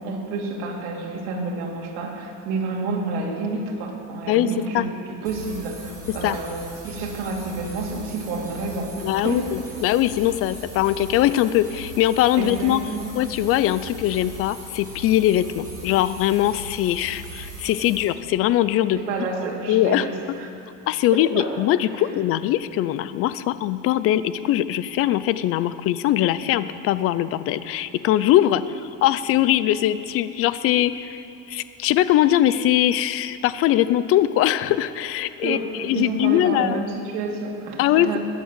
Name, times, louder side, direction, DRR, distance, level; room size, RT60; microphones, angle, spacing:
voice 1, 0.0-9.9 12.3-13.1 18.9-20.5 21.1-21.6 22.0-22.1 35.4-38.2, right 3 dB, 85° right, -1 dB, 2.6 m, -29 dB
sound 1, 5.2-18.0, right 1 dB, 10° right, 4.3 m, -39 dB
voice 2, 9.0-12.8 13.2-19.0 19.7-20.1 20.9-28.6 29.0-31.2 31.5-36.8 37.8-38.2, left 13 dB, 45° left, 15 dB, 0.5 m, -21 dB
21.0 x 7.4 x 7.5 m, 2.8 s
cardioid pair, 165°, 33 cm